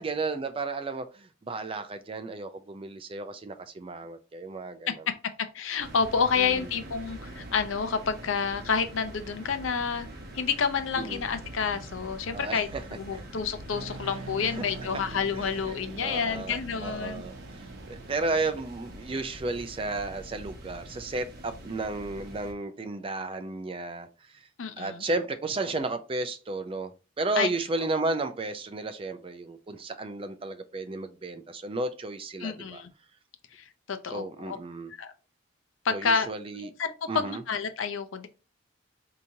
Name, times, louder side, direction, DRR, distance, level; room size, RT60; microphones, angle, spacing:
voice 1, 0.0-4.9 6.4-6.7 11.0-11.2 12.3-12.8 13.1-13.3 14.4-14.7 15.3-15.4 16.0-24.1 24.8-26.9 27.2-32.8 34.1-34.9 35.9-36.7 37.1-37.4, right 3 dB, 30° right, 0.4 m, -33 dB
voice 2, 5.4-10.1 10.3-17.2 24.6-25.0 27.4-27.5 32.4-32.9 33.5-34.6 34.9-35.1 35.8-36.3 36.5-38.3, left 6 dB, 90° left, 0.6 m, -29 dB
sound 1, 5.8-22.5, right 1 dB, 55° right, 1.0 m, -44 dB
sound 2, 13.7-19.5, right 3 dB, 85° right, 0.5 m, -45 dB
4.8 x 2.9 x 2.7 m
head